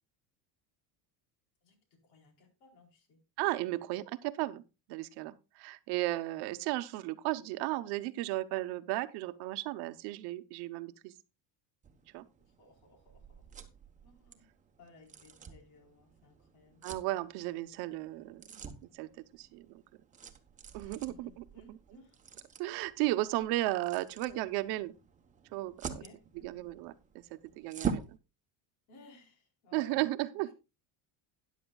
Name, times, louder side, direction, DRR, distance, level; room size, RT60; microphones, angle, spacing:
voice 1, 1.6-3.2 12.6-13.5 14.0-14.5 14.8-16.8 20.8-22.2 22.6-22.9 25.9-26.6 28.9-30.1 30.3-30.5, left 3 dB, 75° left, 4.2 m, -59 dB
voice 2, 3.4-4.6 4.9-11.1 12.1-12.2 16.8-18.4 18.9-19.8 20.7-21.8 22.6-24.9 25.5-26.0 26.4-28.2 29.7-30.5, right 18 dB, 65° right, 0.9 m, -35 dB
sound 1, 11.8-28.2, right 6 dB, 20° right, 1.0 m, -45 dB
13.5 x 10.0 x 2.3 m
cardioid pair, 160°, 42 cm